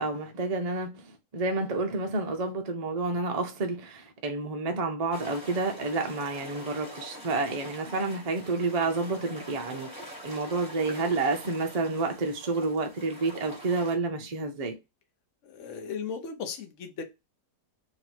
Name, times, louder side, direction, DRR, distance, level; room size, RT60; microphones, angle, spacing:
voice 1, 0.0-9.9 10.2-14.8, right 3 dB, 55° right, 0.4 m, -29 dB
sound 1, 5.1-13.9, equal, 5° right, 1.3 m, -44 dB
voice 2, 15.4-17.0, left 6 dB, 55° left, 1.0 m, -36 dB
3.1 x 3.0 x 4.2 m
omnidirectional pair, 1.8 m